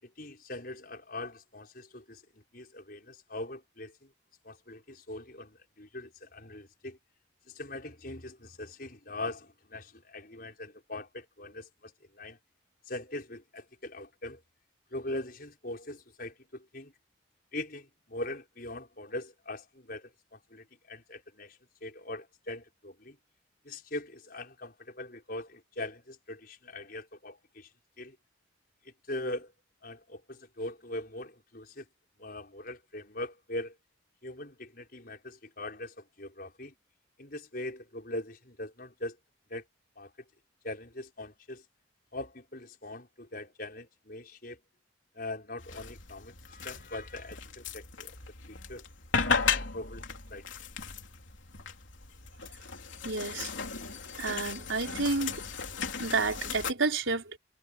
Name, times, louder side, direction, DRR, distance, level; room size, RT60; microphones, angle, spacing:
voice 1, 0.0-4.1 4.4-7.0 7.5-12.4 12.9-14.4 14.9-16.9 17.5-23.2 23.6-27.7 28.0-28.2 28.8-29.5 29.8-31.9 32.2-33.8 34.2-36.7 37.2-39.2 39.5-39.7 40.0-40.1 40.6-41.6 42.1-44.6 45.1-48.2 48.5-48.8 49.4-50.0 50.3-50.5, left 1 dB, 50° left, 6.0 m, -41 dB
sound 1, 45.6-56.7, left 5 dB, 75° left, 3.4 m, -35 dB
voice 2, 53.0-53.7 54.2-55.4 56.0-57.4, right 3 dB, 85° right, 4.5 m, -30 dB
head